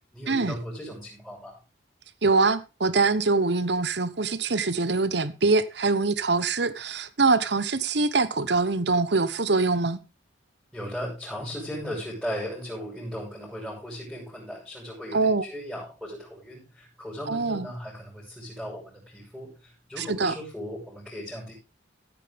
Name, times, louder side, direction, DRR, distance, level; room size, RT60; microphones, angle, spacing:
voice 1, 0.1-1.6 10.7-21.5, equal, ahead, 6.0 m, -37 dB
voice 2, 2.2-10.0 15.1-15.4 17.3-17.7 20.0-20.3, right 3 dB, 60° right, 1.0 m, -24 dB
15.5 x 9.0 x 3.5 m
head